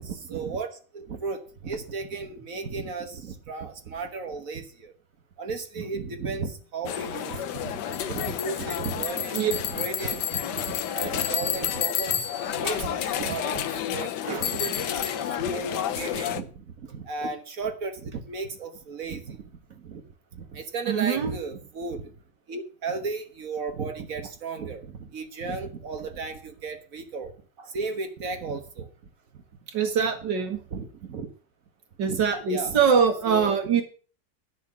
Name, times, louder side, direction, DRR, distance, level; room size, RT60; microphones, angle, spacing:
voice 1, 0.0-4.9 5.4-20.0 20.3-22.1 22.5-27.3 27.7-28.9 30.7-31.3 32.0-32.2 32.5-32.8 33.2-33.5, right 4 dB, 55° right, 7 dB, 1.5 m, -35 dB
sound 1, 6.9-16.4, left 10 dB, 75° left, 1.4 m, -30 dB
voice 2, 20.9-21.3 29.7-30.6 32.0-33.8, right 6 dB, 80° right, 6 dB, 2.3 m, -23 dB
11.0 x 6.4 x 7.0 m, 0.41 s
omnidirectional pair, 1.9 m